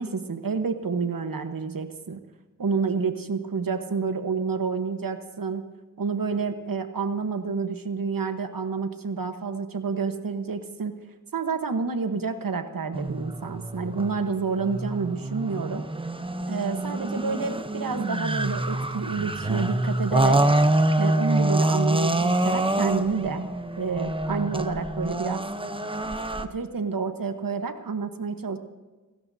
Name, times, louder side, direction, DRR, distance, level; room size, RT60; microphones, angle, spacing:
voice 1, 0.0-2.2 2.6-5.7 6.0-11.0 11.3-15.9 16.5-20.4 21.0-23.4 23.8-25.4 26.4-28.6, right 5 dB, 75° right, 8 dB, 1.2 m, -29 dB
sound 1, 12.9-26.4, right 1 dB, 15° right, 0.8 m, -26 dB
28.0 x 12.5 x 2.7 m, 1.3 s
wide cardioid pair, 60°, 34 cm